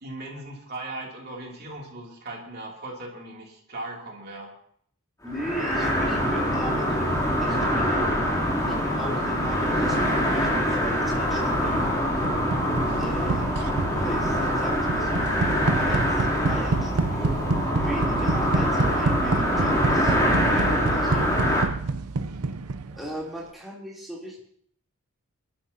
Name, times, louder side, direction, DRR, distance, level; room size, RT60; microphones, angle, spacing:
voice 1, 0.0-4.5, right 2 dB, 45° right, -1 dB, 2.9 m, -38 dB
voice 2, 5.2-8.0 8.7-12.0 13.0-13.4 13.9-15.3 15.8-17.4 17.7-21.3 23.0-24.4, equal, ahead, -5 dB, 3.2 m, -38 dB
sound 1, 5.3-21.6, equal, 15° left, 3.1 m, -24 dB
sound 2, 12.2-23.1, right 3 dB, 85° right, 0.6 m, -28 dB
28.5 x 12.0 x 2.8 m, 0.63 s
head